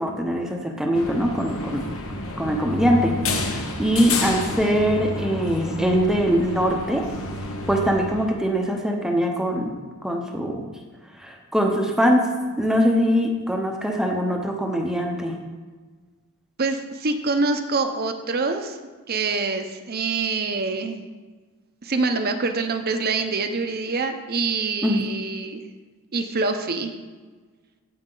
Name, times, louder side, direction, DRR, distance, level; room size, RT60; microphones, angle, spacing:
voice 1, 0.0-1.8 2.4-3.1 3.5-7.0 7.7-9.8 10.0-10.6 11.2-12.2 12.6-15.3 24.8-25.1, equal, ahead, 1 dB, 0.8 m, -22 dB
sound 1, 0.9-8.5, left 2 dB, 65° left, 1.1 m, -30 dB
voice 2, 16.6-18.8 19.1-21.0 21.8-25.6 26.1-26.9, right 3 dB, 45° right, 6 dB, 0.8 m, -25 dB
15.5 x 5.4 x 3.9 m, 1.4 s
head